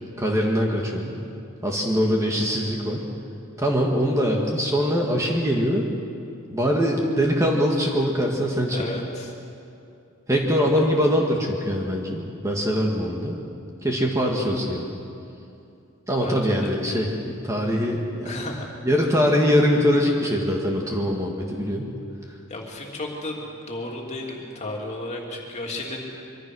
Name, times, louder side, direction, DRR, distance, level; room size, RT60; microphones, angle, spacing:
voice 1, 0.2-1.2 1.6-3.0 3.6-5.9 6.5-8.8 10.3-13.4 13.8-14.9 16.1-18.3 18.8-21.9, equal, 15° right, 0 dB, 1.9 m, -22 dB
voice 2, 8.7-9.3 10.7-10.9 16.2-16.7 18.2-18.7 22.5-26.1, left 2 dB, 30° left, 0 dB, 3.1 m, -33 dB
24.5 x 24.0 x 6.4 m, 2.6 s
head